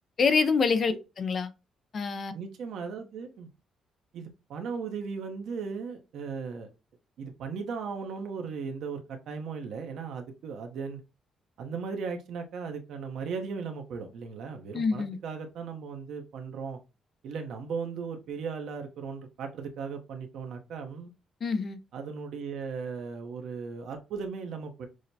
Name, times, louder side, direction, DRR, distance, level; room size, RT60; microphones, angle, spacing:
voice 1, 0.2-1.5 1.9-2.3 14.7-15.2 21.4-21.8, left 5 dB, 45° left, 0.6 m, -26 dB
voice 2, 2.3-3.5 4.1-6.7 7.2-11.0 11.6-16.8 17.2-21.1 21.9-24.9, right 5 dB, 75° right, 0.9 m, -37 dB
6.2 x 2.1 x 2.7 m
cardioid pair, 90°, 0 cm